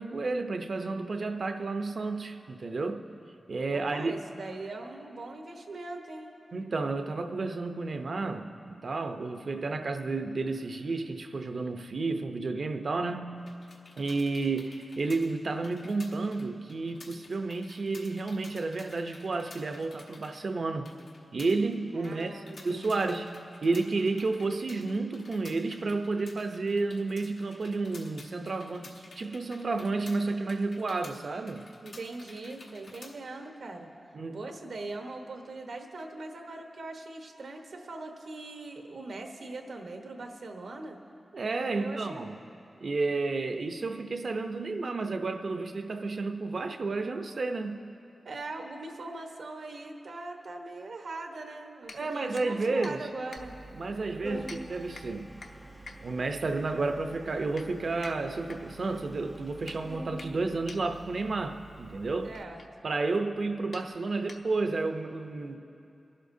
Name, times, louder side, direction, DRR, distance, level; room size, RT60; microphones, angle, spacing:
voice 1, 0.0-3.0 3.5-4.1 6.5-13.4 14.0-20.9 21.3-23.3 23.6-31.7 34.1-34.4 41.3-42.4 42.8-47.8 51.9-53.1 53.7-55.3 56.0-62.3 62.8-65.6, right 3 dB, 60° right, 6 dB, 0.7 m, -31 dB
voice 2, 3.7-6.4 21.9-23.3 31.8-33.9 34.3-41.0 41.7-42.2 48.2-53.6 62.2-62.6, right 2 dB, 80° right, 3 dB, 1.1 m, -41 dB
sound 1, 13.4-33.2, left 3 dB, 80° left, 1.3 m, -52 dB
sound 2, 51.8-64.8, left 3 dB, 65° left, 0.8 m, -51 dB
Organ, 53.4-62.4, right 1 dB, 10° right, 0.5 m, -46 dB
25.5 x 11.5 x 2.7 m, 2.8 s
wide cardioid pair, 120°, 0 cm